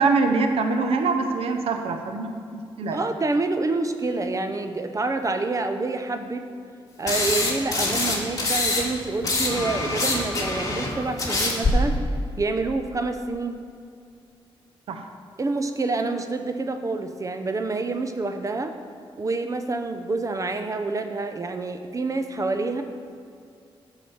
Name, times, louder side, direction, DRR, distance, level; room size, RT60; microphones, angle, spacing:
voice 1, 0.0-3.1 14.9-15.1, right 4 dB, 85° right, 5 dB, 0.7 m, -24 dB
voice 2, 2.9-6.5 7.0-12.0 12.4-13.6 15.4-18.7 19.2-22.8, right 3 dB, 35° right, 7 dB, 0.7 m, -27 dB
sound 1, 7.1-8.8 9.1-11.7, left 2 dB, 35° left, 2.0 m, -24 dB
9.8 x 5.0 x 7.2 m, 2.4 s
cardioid pair, 90°, 10 cm